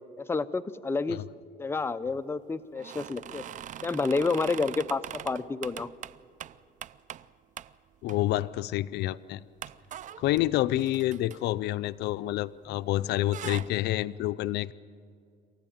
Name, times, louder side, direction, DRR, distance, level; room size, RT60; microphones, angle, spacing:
voice 1, 0.3-1.2 1.6-3.4 3.8-5.9, left 4 dB, 15° left, 11 dB, 0.7 m, -29 dB
sound 1, 2.7-7.3 7.6-7.7 8.1-8.6 8.9-9.0 9.6-12.7 12.9-13.7, right 10 dB, 50° right, 0.5 m, -42 dB
voice 2, 8.0-9.4 10.2-14.7, left 15 dB, 80° left, 15 dB, 0.5 m, -28 dB
28.0 x 14.5 x 8.8 m, 2.4 s
cardioid pair, 110°, 17 cm